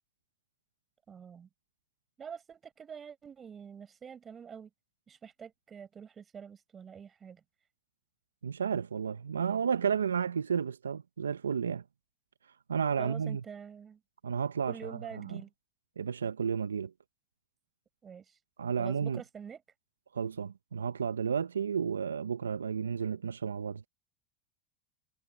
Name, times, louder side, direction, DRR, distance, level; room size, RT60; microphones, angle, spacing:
voice 1, 1.1-1.5 2.2-4.7 5.1-7.4 13.0-14.0 14.7-15.5 18.0-18.4 18.8-19.6, right 7 dB, 30° right, 5.4 m, -46 dB
voice 2, 8.4-11.8 12.7-13.4 14.2-15.4 16.0-16.9 18.6-19.2 20.1-23.9, right 7 dB, 85° right, 1.2 m, -32 dB
hypercardioid pair, 80°, 0 cm